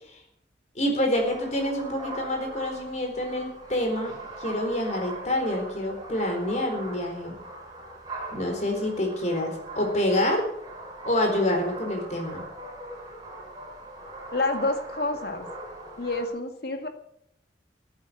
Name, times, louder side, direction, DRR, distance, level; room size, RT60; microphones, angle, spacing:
voice 1, 0.8-4.1 4.4-7.4 8.3-10.5 11.0-12.5, left 1 dB, 40° left, 3 dB, 4.1 m, -27 dB
sound 1, 1.1-16.3, right 1 dB, 20° right, 5.4 m, -41 dB
voice 2, 14.3-15.5 16.0-16.9, left 2 dB, 60° left, 5 dB, 2.0 m, -28 dB
14.5 x 8.8 x 8.6 m, 0.75 s
head